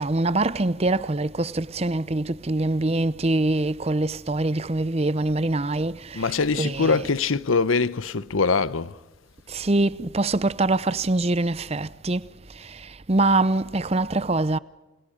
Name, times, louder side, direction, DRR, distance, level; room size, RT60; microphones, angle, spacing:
voice 1, 0.0-7.1 9.5-12.3 12.6-14.6, right 2 dB, 30° right, 0.7 m, -24 dB
voice 2, 6.1-8.9, left 4 dB, 85° left, 0.9 m, -23 dB
29.0 x 27.0 x 5.2 m
head